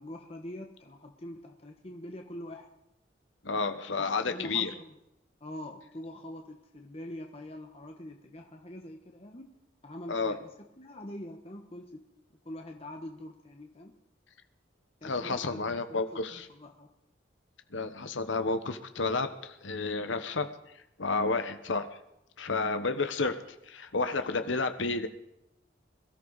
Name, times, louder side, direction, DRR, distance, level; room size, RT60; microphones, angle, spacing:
voice 1, 0.0-2.7 4.0-5.0 5.4-9.5 9.8-10.5 10.8-12.0 12.4-14.0 15.0-16.9 24.4-24.5, left 1 dB, 30° left, 3 dB, 1.2 m, -44 dB
voice 2, 3.4-4.7 10.1-10.3 15.0-16.4 17.7-20.5 21.0-21.9 22.4-23.3 23.7-25.1, left 3 dB, 80° left, 9 dB, 1.1 m, -31 dB
22.0 x 13.5 x 4.1 m, 0.84 s
head